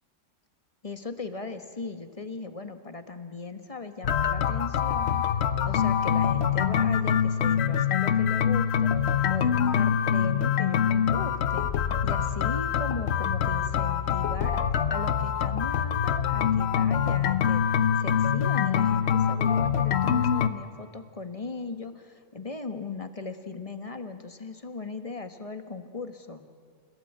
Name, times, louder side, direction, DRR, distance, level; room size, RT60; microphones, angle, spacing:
voice 1, 0.8-8.9 9.3-11.7 12.0-14.6 14.9-17.6 18.0-26.4, left 3 dB, 20° left, 8 dB, 1.1 m, -38 dB
sound 1, 4.0-20.5, left 8 dB, 60° left, 0.7 m, -25 dB
29.5 x 16.5 x 8.9 m, 2.1 s
omnidirectional pair, 2.1 m